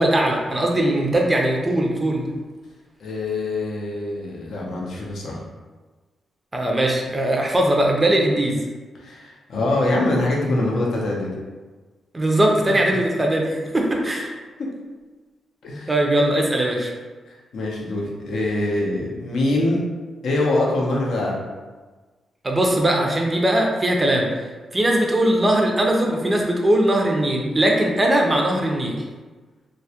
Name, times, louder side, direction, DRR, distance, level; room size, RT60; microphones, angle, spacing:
voice 1, 0.0-2.3 6.5-8.6 12.1-14.3 15.9-16.9 22.4-24.3 24.7-28.9, right 1 dB, 20° right, 0 dB, 0.4 m, -20 dB
voice 2, 3.0-5.4 9.0-11.3 14.6-14.7 15.6-15.9 17.3-19.8 20.2-21.4, left 2 dB, 70° left, -2 dB, 0.5 m, -24 dB
2.2 x 2.0 x 2.7 m, 1.3 s
cardioid pair, 110°, 0 cm